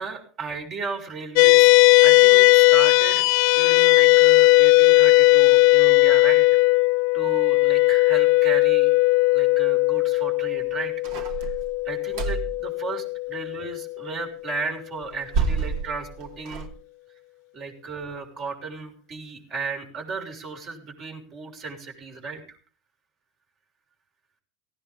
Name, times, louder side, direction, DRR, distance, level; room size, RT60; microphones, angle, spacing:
voice 1, 0.0-1.7 2.0-3.3 3.6-6.6 7.1-8.9 9.3-11.6 11.8-16.7 17.5-22.6, right 4 dB, 45° right, 2 dB, 6.4 m, -35 dB
sound 1, 1.4-14.0, left 22 dB, 60° left, 0.9 m, -17 dB
sound 2, 11.0-12.6 15.0-16.7, right 4 dB, 60° right, 2.8 m, -28 dB
18.5 x 16.5 x 3.9 m, 0.39 s
hypercardioid pair, 80°, 0 cm